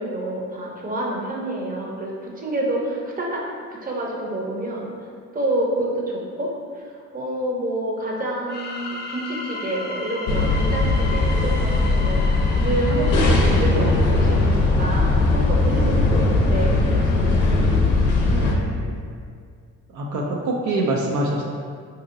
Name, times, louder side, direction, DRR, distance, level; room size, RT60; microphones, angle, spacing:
voice 1, 0.0-4.9 5.3-6.5 6.7-6.9 7.1-12.3 12.6-17.5, right 1 dB, 30° right, -2 dB, 0.7 m, -28 dB
sound 1, 8.5-15.1, left 2 dB, 35° left, 0.5 m, -35 dB
sound 2, 10.3-18.6, left 2 dB, 85° left, 0.6 m, -19 dB
voice 2, 18.2-18.9 19.9-21.4, right 2 dB, 70° right, -2 dB, 0.5 m, -25 dB
3.7 x 2.8 x 2.6 m, 2.1 s
cardioid pair, 90°, 30 cm